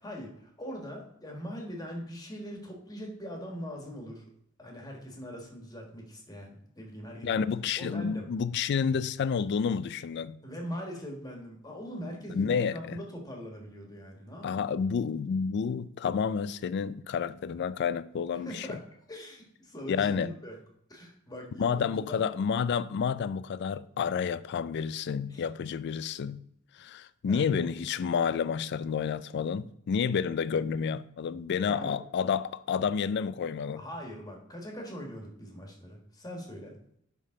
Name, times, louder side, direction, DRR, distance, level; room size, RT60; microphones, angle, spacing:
voice 1, 0.0-4.2 4.6-7.5 7.8-8.3 10.4-14.6 18.4-20.6 20.9-22.3 25.3-25.4 27.3-27.5 31.6-32.0 33.8-36.7, equal, 20° left, 1.5 m, -41 dB
voice 2, 7.2-10.4 12.3-13.0 14.4-18.7 19.9-20.3 21.6-26.4 26.7-33.8, left 6 dB, 55° left, 0.3 m, -30 dB
10.5 x 3.7 x 3.7 m
head